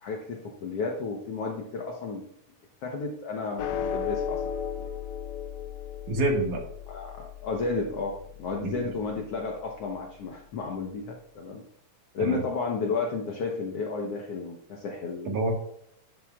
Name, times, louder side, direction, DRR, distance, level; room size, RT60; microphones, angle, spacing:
voice 1, 0.0-2.3 2.8-4.4 4.8-4.9 6.9-11.6 12.1-15.4, left 4 dB, 60° left, 0 dB, 1.7 m, -32 dB
sound 1, 3.6-10.1, left 8 dB, 85° left, 2.3 m, -36 dB
voice 2, 6.1-6.6 8.6-8.9 12.2-12.4 15.3-15.5, right 2 dB, 85° right, 1 dB, 3.2 m, -27 dB
11.0 x 10.5 x 2.4 m, 0.69 s
omnidirectional pair, 3.5 m